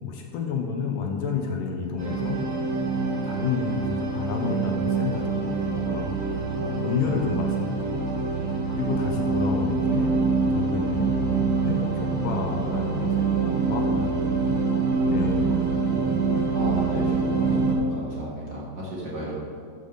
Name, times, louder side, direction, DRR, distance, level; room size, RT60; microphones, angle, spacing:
voice 1, 0.0-2.4 3.0-6.1 6.6-8.1 8.7-10.2 10.5-14.3 14.7-15.6, left 5 dB, 75° left, 1 dB, 2.3 m, -30 dB
sound 1, 2.0-17.7, right 4 dB, 60° right, 1.0 m, -25 dB
voice 2, 16.5-19.4, right 1 dB, 35° right, -6 dB, 1.9 m, -34 dB
13.0 x 7.2 x 4.0 m, 2.5 s
omnidirectional pair, 4.1 m